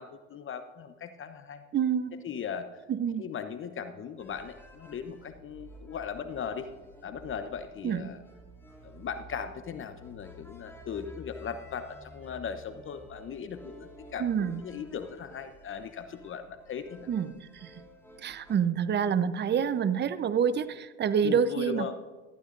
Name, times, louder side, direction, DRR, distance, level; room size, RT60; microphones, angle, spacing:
voice 1, 0.0-1.6 2.2-2.7 3.2-6.7 7.0-8.2 8.8-17.1 21.2-21.9, left 7 dB, 30° left, 9 dB, 0.9 m, -38 dB
voice 2, 1.7-2.2 2.9-3.2 7.8-8.1 14.2-14.6 17.1-17.9 18.2-21.9, right 7 dB, 25° right, 13 dB, 0.8 m, -27 dB
sound 1, 4.2-18.6, equal, 5° left, 2.8 m, -52 dB
18.5 x 14.0 x 2.6 m, 1.3 s
hypercardioid pair, 80°, 38 cm